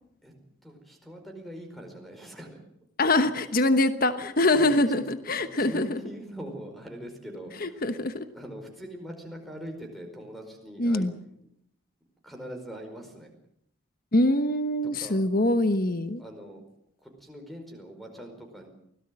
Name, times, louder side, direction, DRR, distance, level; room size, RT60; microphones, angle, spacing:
voice 1, 0.6-2.6 3.1-3.5 4.5-5.0 5.4-8.0 8.3-11.1 12.2-13.3 14.8-15.2 16.2-16.6 17.0-18.7, equal, ahead, 4 dB, 4.9 m, -42 dB
voice 2, 3.0-6.0 7.6-8.2 10.8-11.1 14.1-16.2, left 2 dB, 45° left, 11 dB, 1.2 m, -24 dB
24.0 x 17.5 x 7.7 m, 0.72 s
head